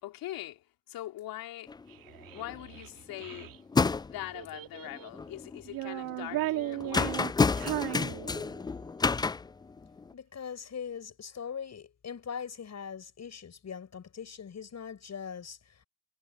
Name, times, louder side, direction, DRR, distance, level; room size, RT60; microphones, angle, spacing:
voice 1, 0.0-1.8 2.3-3.5 3.9-7.9, left 14 dB, 65° left, 3.3 m, -42 dB
sound 1, 1.7-1.9 2.2-2.8 3.1-4.3 4.9-5.6 6.0-10.1, left 4 dB, 10° left, 0.4 m, -30 dB
Child speech kid speaking, 1.9-3.6 4.3-5.2 5.6-8.8, right 15 dB, 60° right, 2.5 m, -36 dB
voice 2, 10.1-15.8, left 7 dB, 45° left, 6.7 m, -41 dB
figure-of-eight pair, 45°, 38 cm